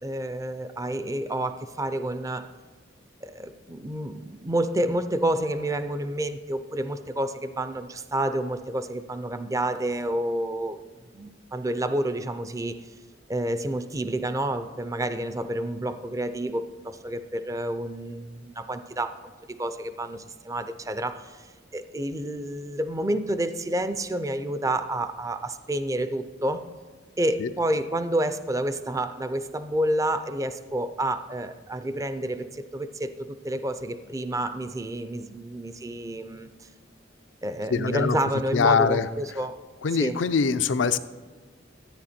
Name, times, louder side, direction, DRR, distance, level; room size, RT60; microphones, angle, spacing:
voice 1, 0.0-2.5 3.2-10.8 11.1-12.8 13.3-19.3 19.6-26.6 27.2-36.7 37.4-39.6 40.0-40.2, right 1 dB, 20° right, 11 dB, 0.5 m, -29 dB
voice 2, 37.7-38.2 38.5-39.1 39.8-41.0, left 5 dB, 80° left, 12 dB, 0.5 m, -23 dB
13.5 x 9.3 x 4.3 m, 1.4 s
head